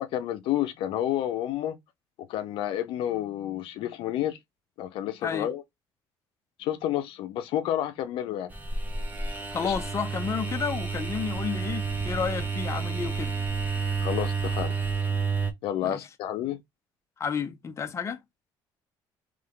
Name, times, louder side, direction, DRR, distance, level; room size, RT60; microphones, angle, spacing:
voice 1, 0.1-1.8 2.3-4.4 4.8-5.6 6.6-8.5 9.6-9.7 14.0-14.7 15.6-16.6, left 12 dB, 75° left, 0.7 m, -30 dB
sound 1, 8.5-15.5, right 5 dB, 20° right, 1.1 m, -30 dB
voice 2, 9.5-13.4 15.8-16.0 17.2-18.2, left 6 dB, 30° left, 0.7 m, -31 dB
3.3 x 3.3 x 3.8 m
cardioid pair, 100°, 9 cm